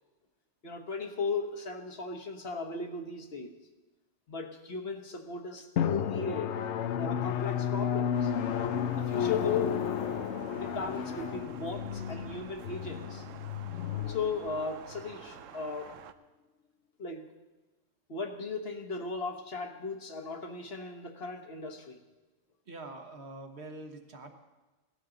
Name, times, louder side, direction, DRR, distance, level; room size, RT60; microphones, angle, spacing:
voice 1, 0.6-3.5 4.3-6.6 7.0-8.3 8.9-9.9 10.5-13.2 14.1-16.0 17.0-17.3 18.1-22.0, left 4 dB, 55° left, 4 dB, 1.3 m, -36 dB
Drum, 5.8-15.0, left 9 dB, 70° left, 0.9 m, -32 dB
Thunder, 8.1-16.1, right 9 dB, 85° right, 1.0 m, -49 dB
voice 2, 22.7-24.3, right 2 dB, 60° right, 4 dB, 1.5 m, -44 dB
17.5 x 13.0 x 3.9 m, 1.2 s
omnidirectional pair, 1.3 m